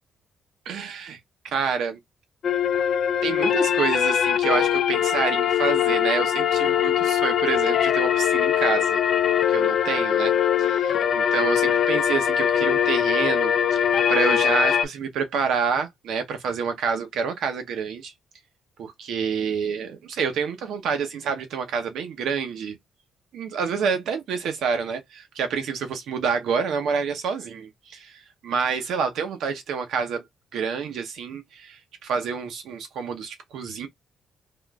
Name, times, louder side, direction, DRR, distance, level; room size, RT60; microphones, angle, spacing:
voice 1, 0.7-1.2 1.4-2.0 3.2-9.0 9.5-10.3 10.6-18.1 18.8-22.8 23.3-30.2 30.5-33.9, right 6 dB, 75° right, 0.8 m, -28 dB
sound 1, 2.4-14.8, left 9 dB, 60° left, 0.4 m, -22 dB
3.5 x 2.5 x 2.3 m
cardioid pair, 90°, 0 cm